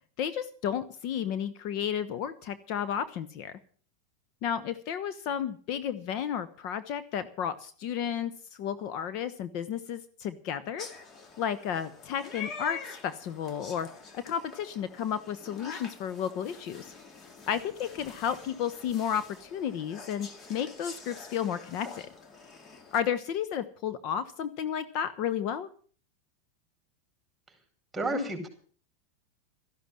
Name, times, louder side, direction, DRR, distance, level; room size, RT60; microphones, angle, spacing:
voice 1, 0.2-3.6 4.4-8.3 8.6-10.9 11.4-13.9 14.1-16.9 17.5-22.1 22.9-25.7, left 8 dB, 50° left, 13 dB, 1.1 m, -32 dB
sound 1, 10.8-23.0, left 5 dB, 30° left, 2.2 m, -46 dB
voice 2, 27.9-28.5, right 1 dB, 10° right, 6 dB, 5.0 m, -30 dB
13.5 x 11.5 x 7.7 m, 0.44 s
supercardioid pair, 125°, 0 cm